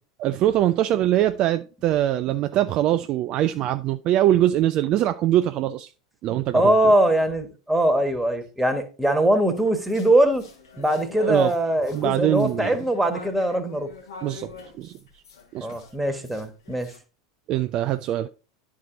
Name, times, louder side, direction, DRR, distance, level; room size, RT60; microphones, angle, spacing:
voice 1, 0.2-5.9 6.2-6.7 11.2-11.5 11.9-12.8 14.2-14.5 14.8-15.0 15.5-15.7 17.5-18.3, right 12 dB, 35° right, 0.3 m, -22 dB
voice 2, 6.5-10.4 10.8-13.9 15.6-16.9, right 1 dB, 5° right, 1.4 m, -21 dB
sound 1, 9.6-17.0, left 5 dB, 70° left, 1.8 m, -45 dB
10.5 x 4.7 x 3.8 m
figure-of-eight pair, 85°, 2 cm